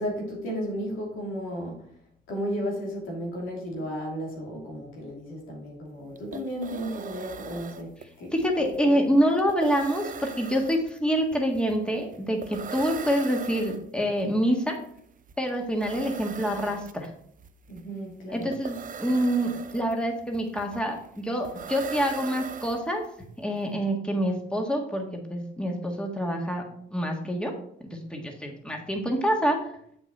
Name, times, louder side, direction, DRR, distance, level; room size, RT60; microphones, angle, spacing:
voice 1, 0.0-1.8 2.3-9.1 17.7-18.5, equal, 85° left, -1 dB, 2.8 m, -34 dB
sound 1, 5.9-6.0 6.2-23.2, right 6 dB, 40° right, 0.6 m, -41 dB
voice 2, 8.3-14.8 15.4-17.1 18.3-23.0 23.4-25.0 25.3-26.6 26.9-27.5 27.9-29.6, equal, 5° left, 2 dB, 1.6 m, -26 dB
7.6 x 5.9 x 4.3 m, 0.67 s
cardioid pair, 90°, 20 cm